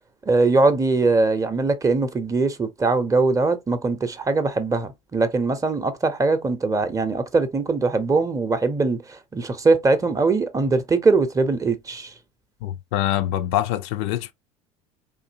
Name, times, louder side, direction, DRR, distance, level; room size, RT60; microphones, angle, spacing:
voice 1, 0.3-12.1, right 3 dB, 20° right, 0.7 m, -21 dB
voice 2, 12.6-14.3, left 13 dB, 55° left, 0.4 m, -24 dB
3.7 x 2.7 x 2.6 m
figure-of-eight pair, 70°, 18 cm